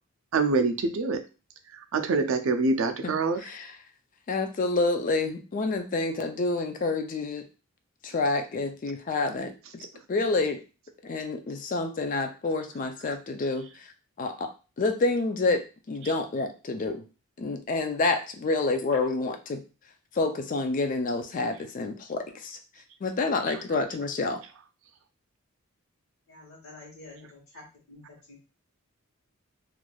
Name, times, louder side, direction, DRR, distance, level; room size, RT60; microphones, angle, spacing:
voice 1, 0.3-1.2 1.7-3.4, right 3 dB, 65° right, 7 dB, 0.4 m, -25 dB
voice 2, 3.4-3.7 4.3-7.5 8.0-10.6 11.0-13.9 14.2-17.0 17.4-19.6 20.1-22.6 23.0-24.4, left 3 dB, 40° left, 7 dB, 0.3 m, -28 dB
voice 3, 26.3-28.4, left 2 dB, 70° left, -1 dB, 1.0 m, -49 dB
3.2 x 2.4 x 2.2 m, 0.32 s
head